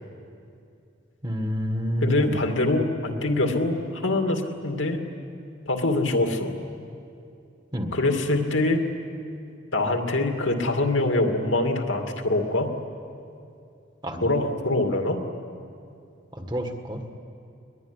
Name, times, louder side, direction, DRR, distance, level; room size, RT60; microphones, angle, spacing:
voice 1, 1.2-2.4 7.7-7.9 14.0-14.3 16.3-17.1, equal, 20° right, 5 dB, 1.7 m, -29 dB
voice 2, 2.0-5.0 5.7-6.5 7.9-8.8 9.7-12.7 14.2-15.2, left 2 dB, 80° left, 4 dB, 2.5 m, -24 dB
22.0 x 22.0 x 9.9 m, 2.5 s
head